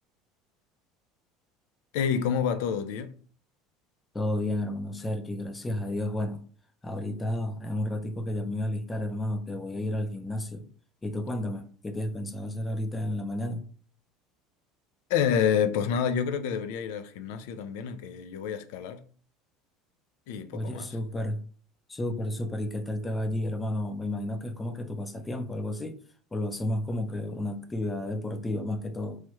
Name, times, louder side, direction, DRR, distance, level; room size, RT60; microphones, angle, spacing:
voice 1, 1.9-3.1 15.1-19.0 20.3-20.9, left 7 dB, 80° left, 0.3 m, -28 dB
voice 2, 4.1-6.4 6.8-10.7 11.0-13.7 20.5-21.4 21.9-26.0 26.3-29.2, left 1 dB, 15° left, 0.4 m, -32 dB
3.1 x 2.2 x 3.0 m
supercardioid pair, 115°, 0 cm